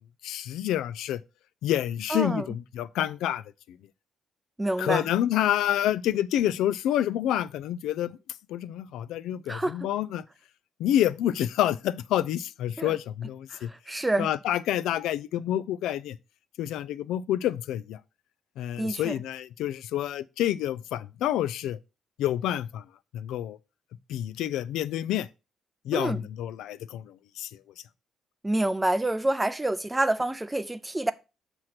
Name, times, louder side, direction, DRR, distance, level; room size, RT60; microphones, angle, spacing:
voice 1, 0.2-1.2 1.6-3.4 4.8-8.2 8.5-10.2 10.8-13.7 14.2-16.2 16.6-18.0 18.6-21.8 22.2-22.8 23.1-23.6 24.1-25.3 25.9-27.5, left 12 dB, 90° left, 0.3 m, -28 dB
voice 2, 2.1-2.5 4.6-5.1 9.5-9.8 12.8-13.0 13.5-14.3 18.8-19.2 25.9-26.2 28.4-31.1, right 1 dB, 10° right, 0.5 m, -27 dB
6.4 x 3.0 x 5.7 m
cardioid pair, 100°, 0 cm